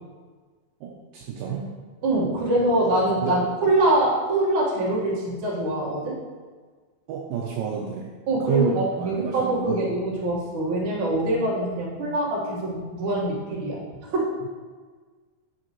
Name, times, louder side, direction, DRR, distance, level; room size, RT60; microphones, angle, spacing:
voice 1, 0.8-1.7 3.2-3.3 7.1-8.1 8.5-9.9, right 7 dB, 80° right, -1 dB, 2.2 m, -29 dB
voice 2, 2.0-6.1 8.3-13.8 14.1-14.3, right 1 dB, 45° right, -5 dB, 1.8 m, -24 dB
7.5 x 6.4 x 3.0 m, 1.4 s
omnidirectional pair, 4.3 m